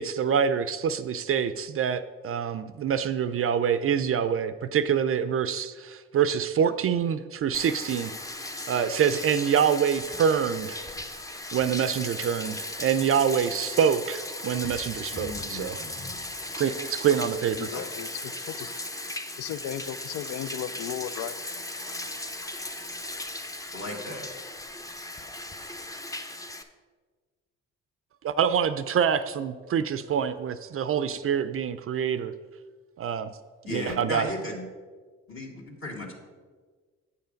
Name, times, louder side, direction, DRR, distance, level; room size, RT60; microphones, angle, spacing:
voice 1, 0.0-10.8 11.5-15.8 16.5-17.7 28.2-32.3 33.0-33.4 33.6-34.3, right 8 dB, 45° right, 12 dB, 0.4 m, -26 dB
Bathtub (filling or washing), 7.5-26.6, left 1 dB, 10° left, 0.6 m, -37 dB
voice 2, 15.1-15.9 17.7-17.8 23.7-24.3 33.6-34.7 35.3-36.1, left 1 dB, 45° left, -1 dB, 1.6 m, -36 dB
voice 3, 17.3-18.7 19.4-21.4, left 10 dB, 85° left, 15 dB, 0.5 m, -36 dB
8.4 x 5.6 x 5.1 m, 1.4 s
cardioid pair, 90°, 30 cm